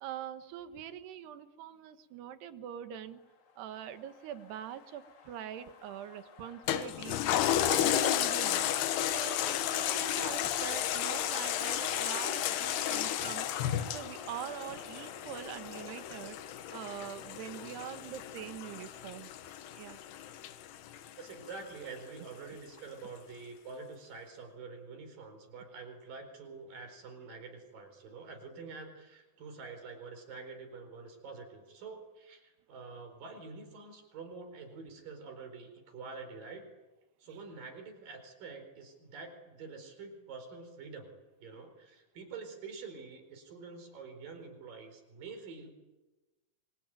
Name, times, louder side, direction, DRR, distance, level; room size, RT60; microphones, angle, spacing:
voice 1, 0.0-3.2 3.6-7.2 7.7-8.7 9.0-13.5 13.9-16.4 16.7-19.3 19.7-20.0, right 10 dB, 85° right, 10 dB, 3.5 m, -43 dB
sound 1, 3.3-20.0, left 6 dB, 55° left, 3.2 m, -49 dB
Toilet flush, 6.7-21.5 22.0-22.1, left 11 dB, 85° left, 3.3 m, -33 dB
voice 2, 21.2-36.7 37.2-41.1 41.4-45.7, right 4 dB, 60° right, 6 dB, 6.0 m, -47 dB
26.0 x 25.0 x 9.1 m, 1.1 s
omnidirectional pair, 4.6 m